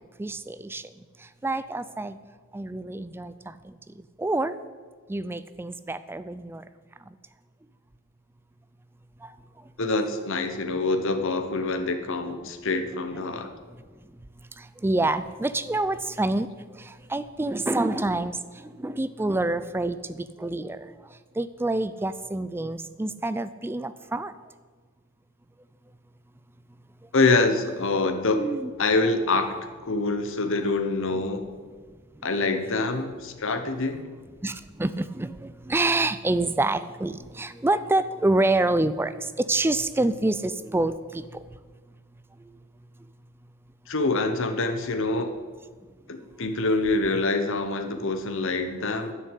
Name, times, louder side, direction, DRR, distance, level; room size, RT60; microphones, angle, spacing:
voice 1, 0.2-0.8 1.4-2.2 2.5-3.7 4.2-4.5 5.1-6.6 9.2-9.3 14.6-16.5 16.8-18.4 18.6-20.9 21.4-24.3 28.4-28.7 34.4-41.2, right 2 dB, 10° right, 14 dB, 0.4 m, -27 dB
voice 2, 9.8-13.5 27.1-28.4 28.8-29.6 29.8-31.5 32.2-34.0 43.9-45.3 46.1-49.1, left 3 dB, 65° left, 7 dB, 1.1 m, -25 dB
11.0 x 6.4 x 8.3 m, 1.5 s
head